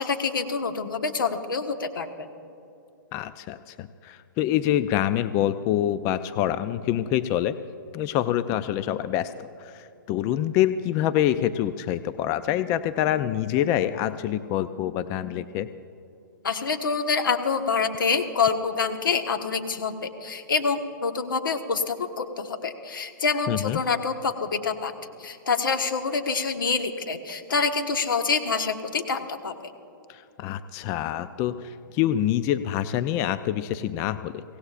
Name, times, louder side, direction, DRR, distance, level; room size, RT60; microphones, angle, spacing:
voice 1, 0.0-2.3 16.4-24.9 25.2-29.7, left 5 dB, 80° left, 6 dB, 1.3 m, -26 dB
voice 2, 3.1-7.6 7.9-15.7 23.5-23.8 30.1-34.4, left 11 dB, 30° left, 12 dB, 0.4 m, -26 dB
24.0 x 17.5 x 2.5 m, 2.7 s
hypercardioid pair, 130°, 11 cm